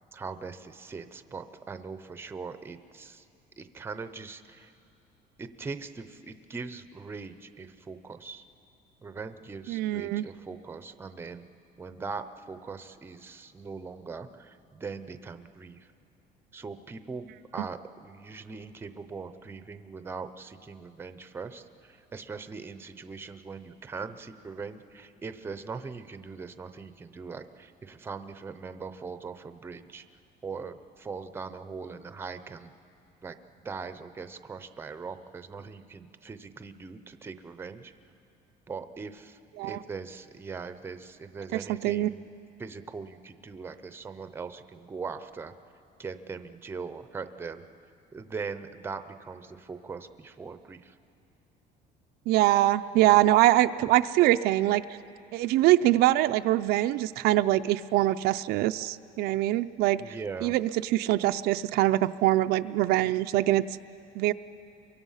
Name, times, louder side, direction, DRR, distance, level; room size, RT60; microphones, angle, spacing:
voice 1, 0.1-3.3 3.6-4.7 5.4-8.4 9.0-11.4 11.8-15.9 16.5-30.0 30.4-32.7 33.2-33.4 33.6-37.9 38.7-42.2 42.6-45.5 46.0-51.0 60.0-60.5, right 4 dB, 15° right, 10 dB, 0.6 m, -41 dB
voice 2, 9.7-10.2 39.6-39.8 41.5-42.1 52.3-54.8 55.3-60.1 60.4-63.6 64.1-64.3, right 15 dB, 70° right, 10 dB, 0.5 m, -23 dB
29.5 x 23.5 x 5.6 m, 2.6 s
cardioid pair, 170°, 17 cm